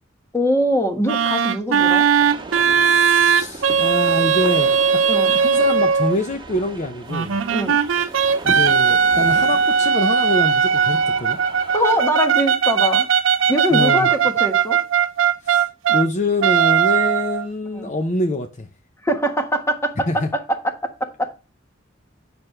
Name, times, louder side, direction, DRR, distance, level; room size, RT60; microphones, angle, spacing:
voice 1, 0.3-2.1 5.0-5.3 7.5-7.8 11.7-13.1 13.5-14.8 17.7-17.9 19.0-21.4, equal, 15° left, 1.3 m, -22 dB
sound 1, 1.1-6.2 7.1-16.1 16.4-17.5, right 7 dB, 90° right, 0.6 m, -18 dB
sound 2, 1.7-12.0, right 2 dB, 25° right, 1.5 m, -37 dB
voice 2, 2.8-5.0 5.3-7.3 8.4-11.4 13.7-14.1 15.4-18.7 20.1-20.3, left 2 dB, 40° left, 0.7 m, -25 dB
8.9 x 6.1 x 3.2 m
head